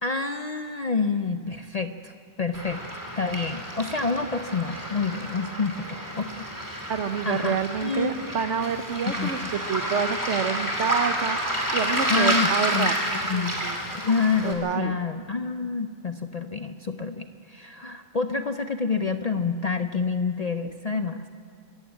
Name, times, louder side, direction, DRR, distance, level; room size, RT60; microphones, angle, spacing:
voice 1, 0.0-6.9 7.3-8.3 9.1-9.3 12.1-12.9 13.3-13.5 13.9-21.2, left 4 dB, 45° left, 8 dB, 0.5 m, -28 dB
Waves surf, 2.5-14.5, equal, 15° right, 2.8 m, -30 dB
voice 2, 6.9-12.9 13.3-13.8 14.4-14.9, right 7 dB, 70° right, 10 dB, 1.2 m, -28 dB
25.0 x 14.0 x 8.5 m, 2.4 s
omnidirectional pair, 1.3 m